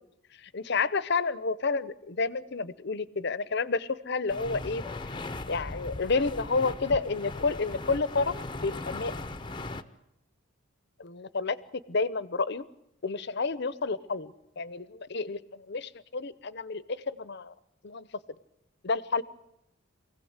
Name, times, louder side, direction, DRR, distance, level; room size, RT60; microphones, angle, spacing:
voice 1, 0.4-4.8 5.5-9.1 11.0-11.6 11.9-12.7 13.0-17.5 17.8-18.1 18.8-19.2, left 4 dB, 55° left, 17 dB, 0.7 m, -30 dB
sound 1, 4.3-9.8, left 2 dB, 20° left, 0.7 m, -38 dB
24.5 x 16.5 x 8.1 m, 0.85 s
head